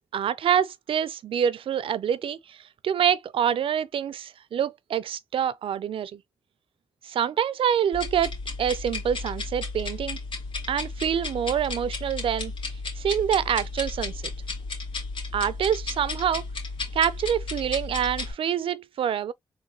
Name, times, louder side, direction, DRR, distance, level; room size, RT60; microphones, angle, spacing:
voice 1, 0.0-2.6 2.8-6.2 7.0-10.2 10.7-12.5 13.0-14.2 15.3-16.5 16.9-19.3, right 9 dB, 85° right, 0.4 m, -26 dB
sound 1, 7.9-18.3, left 3 dB, 75° left, 2.0 m, -34 dB
4.0 x 3.2 x 2.9 m
cardioid pair, 70°, 9 cm